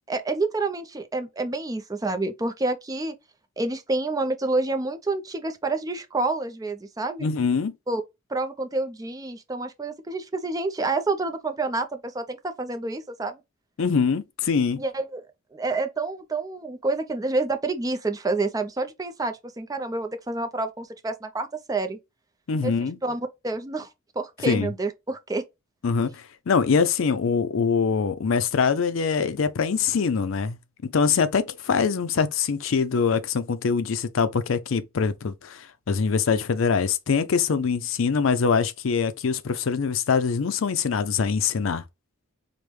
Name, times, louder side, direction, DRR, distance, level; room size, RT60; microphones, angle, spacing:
voice 1, 0.1-3.1 3.6-7.3 7.9-8.0 8.3-13.4 14.8-15.2 15.5-22.0 22.6-22.7 23.0-23.9 24.2-25.4, right 3 dB, 15° right, 0.4 m, -28 dB
voice 2, 7.2-7.7 13.8-14.8 22.5-23.0 24.5-24.7 25.8-30.6 30.8-41.8, left 5 dB, 70° left, 0.5 m, -23 dB
5.1 x 2.1 x 3.0 m
head